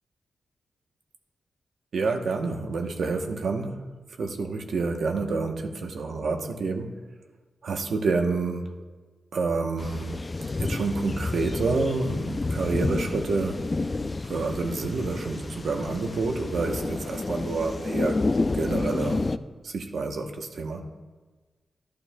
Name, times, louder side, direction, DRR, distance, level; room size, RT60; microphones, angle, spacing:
voice 1, 1.9-3.9 4.2-7.0 7.6-8.7 9.3-10.2 10.6-13.6 14.2-19.3 19.6-20.9, right 3 dB, 75° right, 3 dB, 0.9 m, -28 dB
sound 1, 9.8-19.4, left 3 dB, 30° left, 0.3 m, -30 dB
14.5 x 11.5 x 2.2 m, 1.3 s
wide cardioid pair, 125°, 0 cm